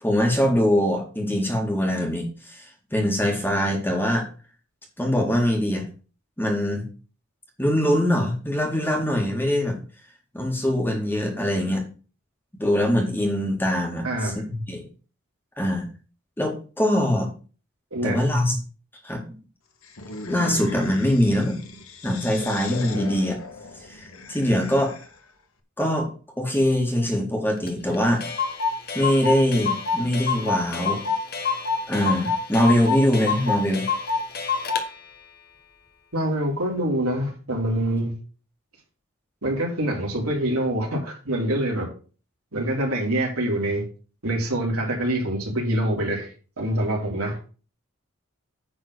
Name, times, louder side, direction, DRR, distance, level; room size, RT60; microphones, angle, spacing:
voice 1, 0.0-4.3 5.0-5.8 6.4-6.8 7.6-9.8 10.3-11.8 12.6-14.3 14.7-14.8 15.6-15.9 16.4-17.3 18.0-18.6 19.0-19.2 20.3-21.6 22.0-23.4 23.9-24.9 25.8-26.1 26.4-28.3 28.9-31.0 31.9-33.9, equal, 10° left, 1 dB, 2.0 m, -23 dB
voice 2, 14.0-14.4 17.9-18.2 36.1-38.1 39.4-41.9 42.5-43.8 44.2-46.3 46.6-47.4, right 1 dB, 85° right, -1 dB, 3.5 m, -25 dB
sound 1, 19.8-25.3, left 3 dB, 70° left, 1.4 m, -38 dB
Clock, 27.7-27.8 27.9-28.0 28.2-34.9, left 5 dB, 45° left, 1.4 m, -27 dB
9.6 x 4.2 x 6.2 m, 0.37 s
head